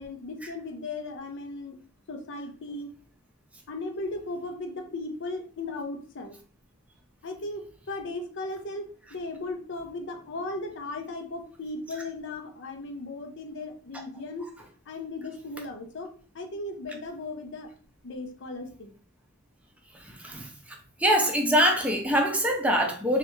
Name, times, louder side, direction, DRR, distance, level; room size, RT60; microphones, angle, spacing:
voice 1, 0.0-1.8 2.1-2.9 3.7-6.4 7.2-14.5 14.9-17.7 18.0-18.9, left 2 dB, 60° left, 0.6 m, -36 dB
voice 2, 20.1-20.5 21.0-23.2, equal, 5° right, 0.6 m, -23 dB
3.3 x 2.4 x 3.0 m
head